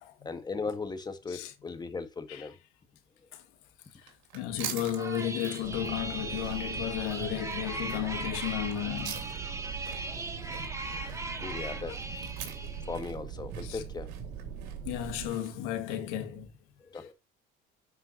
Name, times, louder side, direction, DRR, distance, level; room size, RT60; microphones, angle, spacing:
voice 1, 0.2-2.6 10.9-11.1 11.4-12.0 12.9-14.1 16.8-17.1, left 4 dB, 20° left, 1.6 m, -38 dB
sound 1, 3.9-16.2, right 10 dB, 90° right, 2.9 m, -46 dB
voice 2, 4.3-9.2 11.8-12.0 13.6-13.8 14.9-16.5 16.9-17.0, left 11 dB, 85° left, 2.0 m, -34 dB
sound 2, 5.0-13.0, right 2 dB, 15° right, 2.3 m, -39 dB
sound 3, 5.6-15.3, right 7 dB, 70° right, 2.5 m, -41 dB
11.0 x 5.7 x 2.9 m
cardioid pair, 115°, 21 cm